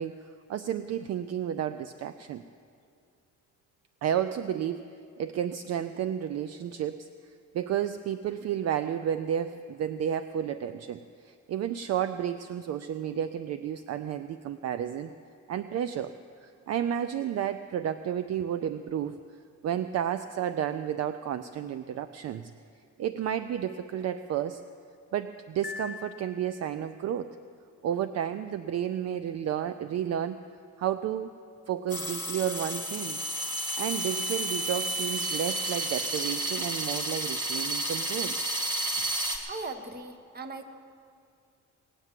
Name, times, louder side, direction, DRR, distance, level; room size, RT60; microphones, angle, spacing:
voice 1, 0.0-2.4 4.0-4.9 5.2-7.1 7.5-15.1 15.5-16.1 16.4-19.2 19.6-22.5 23.0-24.6 25.1-27.3 27.8-30.4 30.8-31.3 31.7-33.2 33.8-38.4, right 9 dB, 60° right, 11 dB, 0.5 m, -31 dB
Piano, 25.6-26.9, left 5 dB, 30° left, 1.0 m, -42 dB
sound 1, 31.9-39.4, right 1 dB, 15° right, 2.1 m, -31 dB
voice 2, 39.5-40.7, right 3 dB, 30° right, 8 dB, 1.2 m, -39 dB
19.0 x 8.2 x 7.5 m, 2.3 s
cardioid pair, 90°, 30 cm